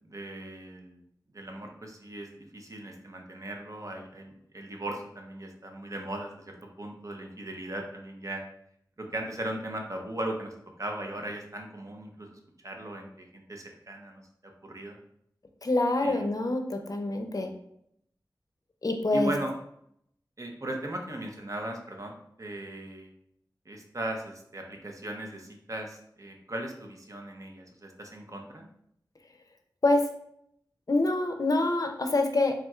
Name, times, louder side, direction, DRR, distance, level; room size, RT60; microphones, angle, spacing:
voice 1, 0.0-1.0 1.3-8.4 9.0-14.2 14.6-15.0 16.0-16.2 19.1-19.6 20.4-23.1 23.7-28.7, right 1 dB, 45° right, 2 dB, 0.8 m, -38 dB
voice 2, 15.6-17.5 18.8-19.3 29.8-30.0 30.9-32.5, left 2 dB, 50° left, 5 dB, 0.5 m, -26 dB
4.1 x 3.6 x 2.4 m, 0.73 s
cardioid pair, 40°, 8 cm